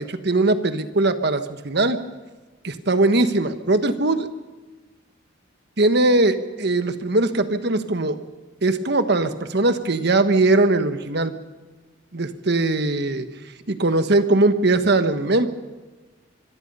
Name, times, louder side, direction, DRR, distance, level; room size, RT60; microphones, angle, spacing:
voice 1, 0.0-2.0 2.6-4.3 5.8-8.2 8.6-11.3 12.1-13.3 13.7-15.5, right 2 dB, 55° right, 9 dB, 1.3 m, -20 dB
25.0 x 23.0 x 5.6 m, 1.2 s
head